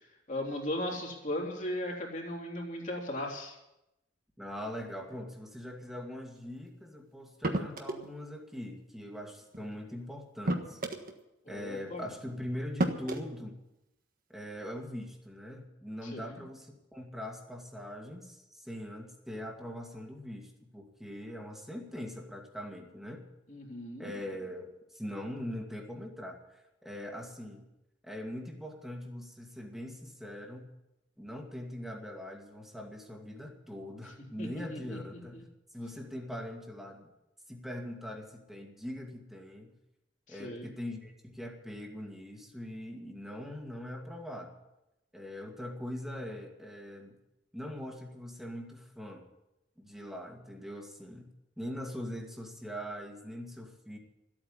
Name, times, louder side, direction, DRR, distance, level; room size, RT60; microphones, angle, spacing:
voice 1, 0.3-3.6 11.5-12.1 16.0-16.4 23.5-24.1 34.4-35.0 35.3-35.4 40.3-40.7, left 1 dB, 45° left, -1 dB, 3.6 m, -37 dB
voice 2, 4.4-10.8 11.5-13.6 14.3-23.3 24.0-27.7 28.0-30.7 31.2-35.4 35.7-37.1 37.5-39.7 40.3-44.5 45.1-47.2 47.5-49.2 49.8-51.3 51.6-54.0, equal, ahead, 1 dB, 2.3 m, -42 dB
sound 1, 7.4-8.1 9.5-9.7 10.4-11.1 12.2-12.3 12.8-13.2, right 1 dB, 50° right, 1.6 m, -31 dB
14.0 x 8.8 x 9.9 m, 0.90 s
head